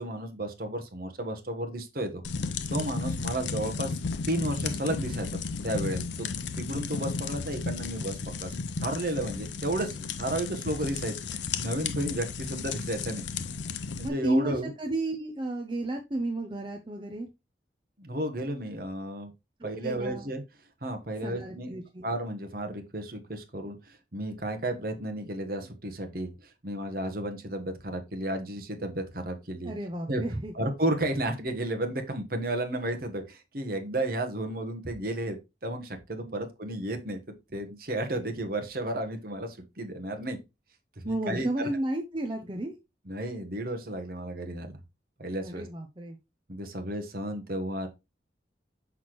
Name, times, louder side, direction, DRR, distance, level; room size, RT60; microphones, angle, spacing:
voice 1, 0.0-2.2 2.7-3.9 4.3-8.5 8.8-13.2 14.0-14.7 18.0-19.3 19.6-20.4 20.8-21.8 22.0-29.7 30.1-30.2 30.5-37.2 37.5-40.4 41.0-41.7 43.1-44.8 45.2-45.7 46.5-47.9, right 1 dB, 50° right, 1.2 m, -33 dB
sound 1, 2.2-14.1, left 4 dB, 75° left, 0.6 m, -34 dB
voice 2, 14.0-17.3 19.6-20.3 21.2-22.1 29.6-30.5 36.3-36.4 41.0-42.7 45.4-46.2, right 1 dB, 25° right, 0.6 m, -32 dB
6.0 x 5.8 x 3.1 m
head